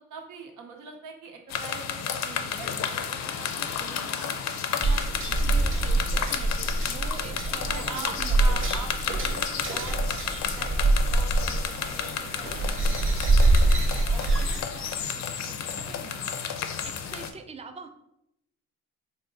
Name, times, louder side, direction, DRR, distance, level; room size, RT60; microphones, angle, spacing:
voice 1, 0.1-4.4 4.6-6.3 7.1-7.4 7.6-10.2 10.5-13.8 14.1-15.2 15.5-16.3, right 4 dB, 85° right, 2 dB, 0.7 m, -44 dB
sound 1, 1.5-17.3, left 7 dB, 65° left, 0.4 m, -32 dB
sound 2, 4.8-14.6, right 2 dB, 45° right, 0.7 m, -25 dB
voice 2, 5.4-8.5 16.8-17.9, right 5 dB, 20° right, 7 dB, 0.3 m, -43 dB
3.6 x 2.1 x 3.8 m, 0.81 s
cardioid pair, 90°, 30 cm